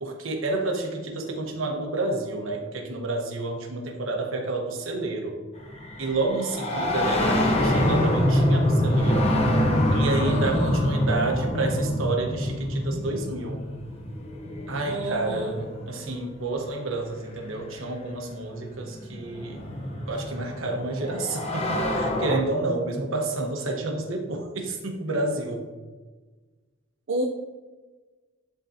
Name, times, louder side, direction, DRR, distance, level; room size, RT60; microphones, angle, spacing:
voice 1, 0.0-5.4 6.0-9.3 9.9-13.6 14.7-19.6 20.1-25.6, right 2 dB, 75° right, 1 dB, 1.1 m, -29 dB
sound 1, 5.6-16.3 17.5-17.6 18.6-22.4, left 1 dB, 30° left, 0.8 m, -25 dB
voice 2, 10.2-10.8 14.8-15.5 27.1-27.2, right 2 dB, 60° right, 0 dB, 0.5 m, -30 dB
10.5 x 3.8 x 2.7 m, 1.3 s
head